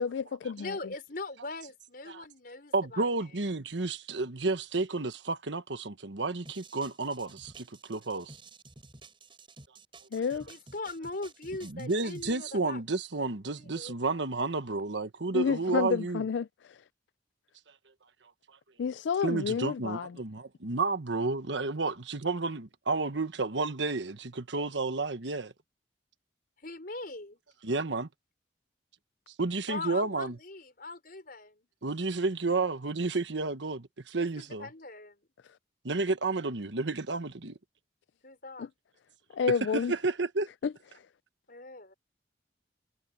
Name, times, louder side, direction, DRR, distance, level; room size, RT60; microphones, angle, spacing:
voice 1, 0.0-0.8 10.1-10.5 15.3-16.8 18.8-20.1 38.6-38.7 39.3-39.9 40.6-41.0, left 6 dB, 75° left, 0.4 m, -30 dB
voice 2, 0.6-3.1 10.5-12.8 13.6-14.2 26.6-27.4 29.7-31.7 34.1-35.2 38.2-38.7 41.5-41.9, left 2 dB, 55° left, 5.2 m, -41 dB
voice 3, 2.7-8.4 11.7-16.2 19.2-25.5 27.6-28.1 29.4-30.4 31.8-34.7 35.8-37.6 39.7-40.5, right 3 dB, 80° right, 1.3 m, -31 dB
sound 1, 6.4-12.3, right 3 dB, 30° right, 5.1 m, -52 dB
head